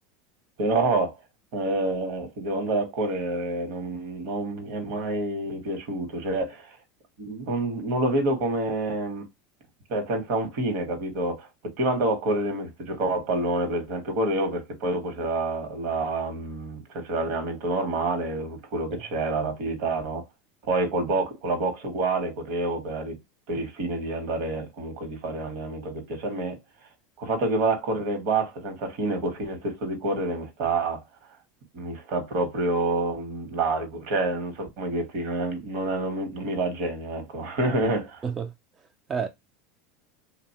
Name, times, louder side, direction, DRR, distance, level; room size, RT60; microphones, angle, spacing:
voice 1, 0.6-1.1 1.5-6.8 7.2-9.3 9.9-20.2 20.6-23.2 23.5-26.6 27.2-31.0 31.7-38.2, right 2 dB, 65° right, 1.0 m, -28 dB
voice 2, 38.2-39.3, right 6 dB, 25° right, 0.3 m, -32 dB
2.7 x 2.0 x 2.7 m
supercardioid pair, 110°, 0 cm